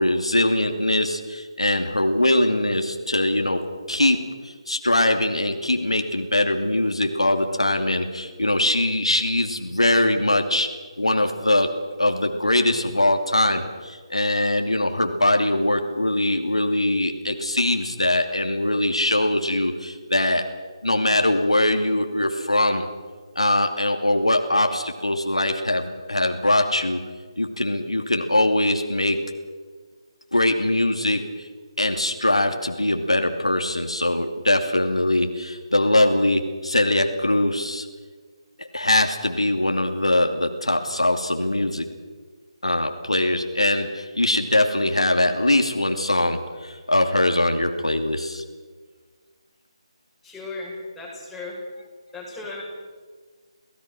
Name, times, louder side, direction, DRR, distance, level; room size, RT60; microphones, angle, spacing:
voice 1, 0.0-10.7 11.0-11.7 12.0-20.4 20.8-22.9 23.4-27.0 27.4-29.2 30.3-31.5 31.8-37.9 38.6-41.9 42.6-48.4, left 1 dB, 85° left, 5 dB, 2.6 m, -22 dB
voice 2, 50.2-51.6 52.1-52.6, left 3 dB, 5° left, -6 dB, 6.3 m, -36 dB
29.0 x 17.5 x 6.0 m, 1.5 s
figure-of-eight pair, 150°, 3 cm